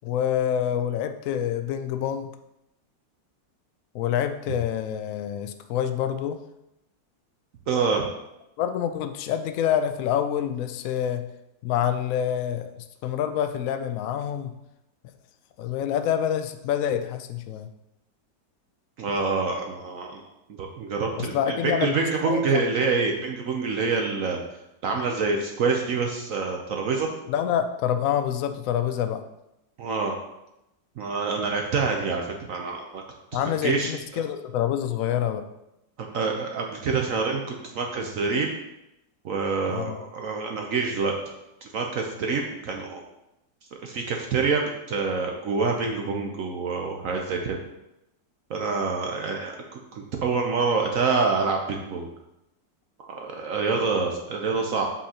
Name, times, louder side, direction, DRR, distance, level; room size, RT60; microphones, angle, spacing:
voice 1, 0.0-2.3 3.9-6.4 8.6-11.3 11.6-12.7 13.0-14.5 15.6-17.7 21.2-22.6 27.3-29.2 33.3-35.4 39.7-40.0, left 9 dB, 80° left, 8 dB, 0.7 m, -27 dB
voice 2, 7.7-8.0 19.0-20.2 20.6-24.4 24.8-27.1 29.8-30.1 31.0-33.0 33.6-34.2 36.0-37.4 37.7-38.5 39.2-41.1 41.6-43.0 43.8-47.6 48.5-49.5 49.9-52.1 53.1-54.8, right 4 dB, 60° right, 2 dB, 0.9 m, -26 dB
7.5 x 5.6 x 2.8 m, 0.87 s
omnidirectional pair, 1.9 m